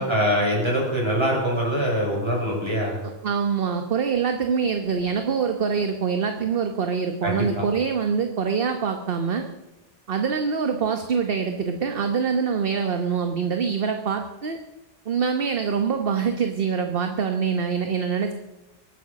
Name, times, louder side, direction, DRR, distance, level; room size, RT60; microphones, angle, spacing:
voice 1, 0.0-3.0 7.2-7.7, equal, 25° right, -3 dB, 6.4 m, -23 dB
voice 2, 3.2-9.5 10.1-14.6 15.1-18.3, right 6 dB, 55° right, 5 dB, 1.2 m, -24 dB
23.5 x 9.0 x 6.5 m, 1.0 s
omnidirectional pair, 1.2 m